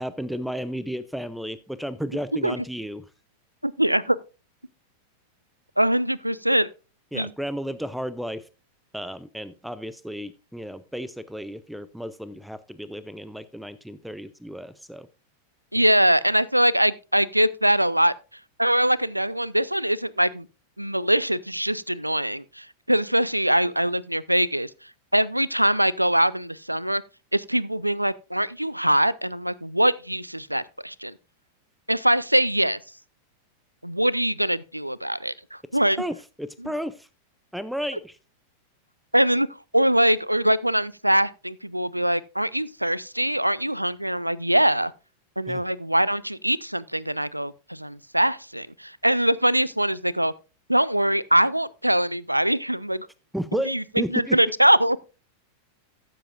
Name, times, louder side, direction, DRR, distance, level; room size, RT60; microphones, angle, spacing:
voice 1, 0.0-3.0 7.1-8.5 8.9-15.1 15.8-15.9 36.0-37.1 37.5-38.2 45.5-45.6 53.3-53.7 54.0-54.4, equal, ahead, 0.5 m, -33 dB
voice 2, 3.6-4.2 5.8-6.7 7.1-7.3 15.7-18.1 18.6-20.5 20.8-24.7 25.1-27.0 27.3-31.1 31.9-32.8 33.8-36.0 39.1-39.5 39.7-44.9 45.4-50.3 50.7-53.1 53.7-53.8 54.1-55.0, right 1 dB, 90° right, 0.4 m, -22 dB
14.5 x 7.6 x 2.5 m
figure-of-eight pair, 90°, 0 cm